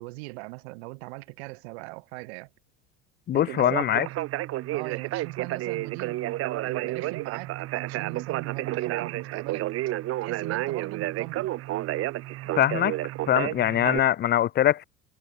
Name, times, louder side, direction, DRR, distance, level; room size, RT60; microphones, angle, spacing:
voice 1, 0.0-2.5 3.3-4.1 4.7-6.2 6.6-9.7 10.2-11.5, right 27 dB, 70° right, 4.0 m, -40 dB
voice 2, 3.3-4.1 12.6-13.0 13.3-14.8, left 11 dB, 30° left, 0.6 m, -22 dB
Conversation, 3.5-14.0, right 16 dB, 45° right, 0.7 m, -31 dB
hypercardioid pair, 75°, 33 cm